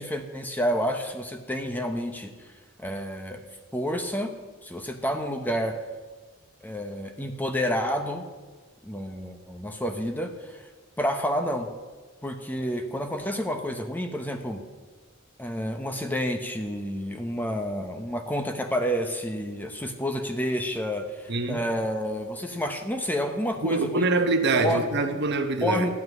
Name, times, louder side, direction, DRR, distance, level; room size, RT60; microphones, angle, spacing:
voice 1, 0.0-2.3 2.8-3.4 3.7-4.3 4.6-5.8 6.6-8.2 8.8-10.6 11.0-11.7 12.2-14.6 15.4-24.1 24.5-24.9 25.6-25.9, equal, 10° left, 5 dB, 0.9 m, -29 dB
voice 2, 21.3-21.6 23.6-25.9, right 3 dB, 55° right, 7 dB, 1.0 m, -24 dB
13.0 x 5.7 x 9.4 m, 1.3 s
head